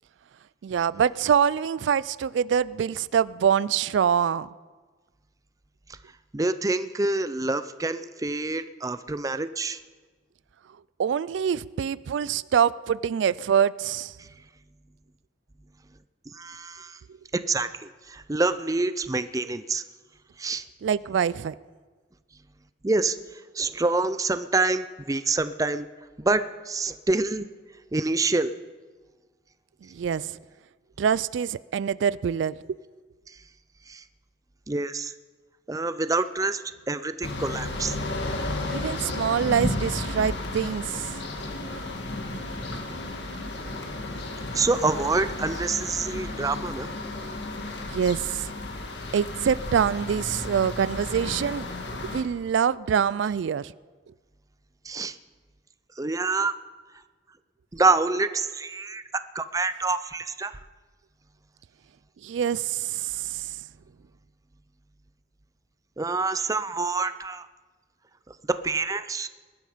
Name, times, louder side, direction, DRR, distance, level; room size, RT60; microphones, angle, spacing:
voice 1, 0.6-4.5 11.0-14.1 20.8-21.5 29.9-30.4 31.0-32.8 38.7-41.2 47.9-48.5 49.1-51.7 52.0-53.7 62.2-63.6, right 8 dB, 85° right, 19 dB, 0.3 m, -25 dB
voice 2, 6.3-9.8 16.3-17.0 17.5-19.8 20.4-20.6 22.8-23.2 23.6-25.9 26.2-27.5 27.9-28.5 33.9-34.0 34.7-35.1 35.7-36.6 36.9-38.0 44.5-46.9 54.9-55.1 56.0-56.5 57.7-60.6 66.0-67.5 68.5-69.3, right 3 dB, 20° right, 12 dB, 0.5 m, -26 dB
sound 1, 37.2-52.2, left 2 dB, 70° left, 1.8 m, -33 dB
20.5 x 11.5 x 5.0 m, 1.4 s
head